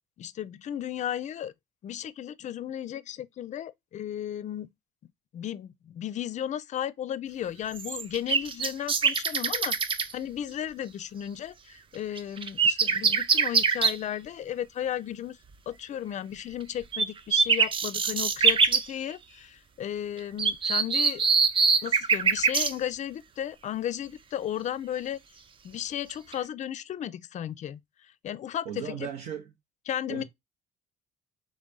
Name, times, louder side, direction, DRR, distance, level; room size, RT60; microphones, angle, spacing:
voice 1, 0.2-1.5 1.8-4.7 5.3-15.4 15.7-21.3 21.8-25.2 25.6-29.1 29.9-30.2, left 10 dB, 45° left, 0.4 m, -34 dB
sound 1, 7.8-10.1 12.2-14.0 16.9-17.1 17.3-18.8 20.4-22.7 26.1-26.3, right 5 dB, 30° right, 0.5 m, -24 dB
voice 2, 28.6-29.5 30.1-30.2, right 8 dB, 85° right, 1.0 m, -36 dB
3.9 x 3.4 x 3.6 m
cardioid pair, 110°, 17 cm